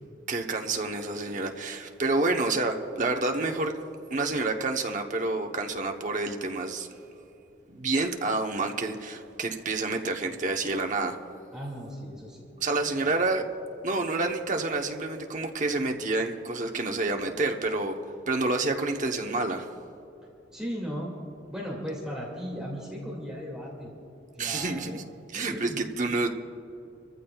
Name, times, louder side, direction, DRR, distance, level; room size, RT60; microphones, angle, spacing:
voice 1, 0.3-3.7 4.1-6.9 7.7-11.2 12.6-13.4 13.8-17.9 18.3-19.7 24.4-25.0 25.3-26.3, right 3 dB, 40° right, 4 dB, 0.9 m, -28 dB
voice 2, 11.5-12.5 12.9-13.0 20.5-21.1 21.5-23.9 24.3-25.0 25.3-25.8, equal, 5° right, -4 dB, 2.2 m, -36 dB
25.5 x 14.5 x 2.3 m, 2.9 s
head